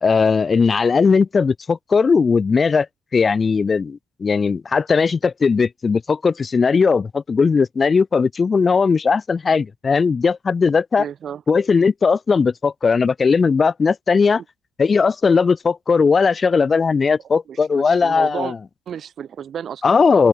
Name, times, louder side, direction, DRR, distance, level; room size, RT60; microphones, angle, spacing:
voice 1, 0.0-2.9 3.1-11.0 11.5-14.4 14.8-18.6 19.8-20.3, left 5 dB, 35° left, 1.1 m, -18 dB
voice 2, 11.0-11.4 17.5-18.5 18.9-19.9, right 8 dB, 60° right, 3.7 m, -32 dB
open air
cardioid pair, 90°, 0 cm